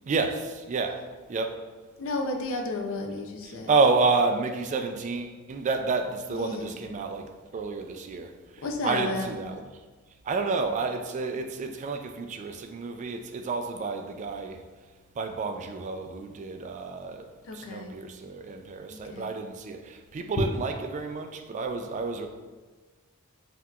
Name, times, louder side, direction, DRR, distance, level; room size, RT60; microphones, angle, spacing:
voice 1, 0.1-1.6 3.4-9.7 10.2-14.6 15.2-17.3 17.5-22.3, right 4 dB, 35° right, 0.3 m, -30 dB
voice 2, 2.0-3.7 6.4-6.7 8.6-9.4 17.4-17.9 18.9-19.3, left 2 dB, 65° left, 0.5 m, -32 dB
5.7 x 2.8 x 2.4 m
head